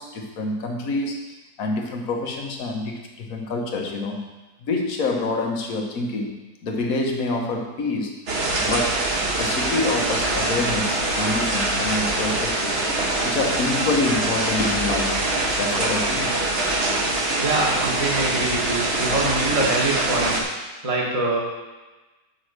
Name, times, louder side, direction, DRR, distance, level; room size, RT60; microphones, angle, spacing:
voice 1, 0.0-4.3 4.6-8.2 8.6-9.1 9.4-12.9 13.2-16.3, left 3 dB, 60° left, 2 dB, 1.4 m, -27 dB
sound 1, 8.3-20.4, right 2 dB, 45° right, 1.2 m, -24 dB
voice 2, 17.4-20.4 20.8-21.4, right 2 dB, 25° right, -3 dB, 1.2 m, -24 dB
5.9 x 5.2 x 6.5 m, 1.1 s
omnidirectional pair, 1.7 m